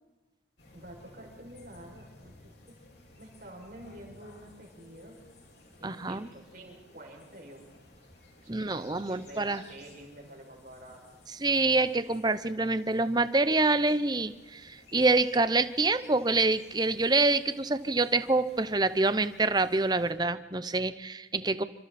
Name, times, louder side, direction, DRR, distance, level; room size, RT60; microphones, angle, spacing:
sound 1, 0.6-20.1, left 2 dB, 60° left, 4.6 m, -55 dB
voice 1, 0.7-2.3 2.7-2.8 3.2-5.2 5.8-7.6 8.4-11.0, right 1 dB, 50° right, 0 dB, 6.5 m, -48 dB
voice 2, 5.8-6.3 8.5-9.6 11.4-21.6, right 3 dB, 20° right, 13 dB, 0.8 m, -26 dB
28.0 x 25.5 x 4.3 m, 1.2 s
head